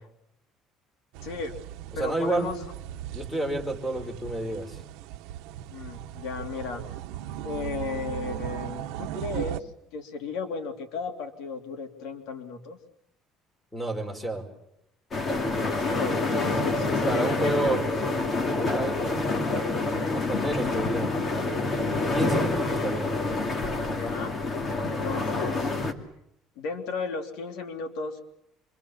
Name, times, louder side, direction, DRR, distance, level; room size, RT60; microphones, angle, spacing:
sound 1, 1.1-9.6, right 13 dB, 90° right, 1.0 m, -37 dB
voice 1, 1.2-1.5 2.0-2.7 5.7-6.8 7.4-12.8 15.5-18.1 23.8-24.3 24.9-25.7 26.6-28.2, left 4 dB, 75° left, 6 dB, 3.0 m, -35 dB
voice 2, 2.0-2.5 3.1-4.8 13.7-14.5 17.1-17.8 18.5-19.1 20.1-21.1 22.1-23.1, right 2 dB, 5° left, 5 dB, 4.8 m, -30 dB
sound 2, 15.1-25.9, left 3 dB, 30° left, 2.6 m, -27 dB
27.5 x 24.5 x 7.3 m, 0.80 s
cardioid pair, 135°, 0 cm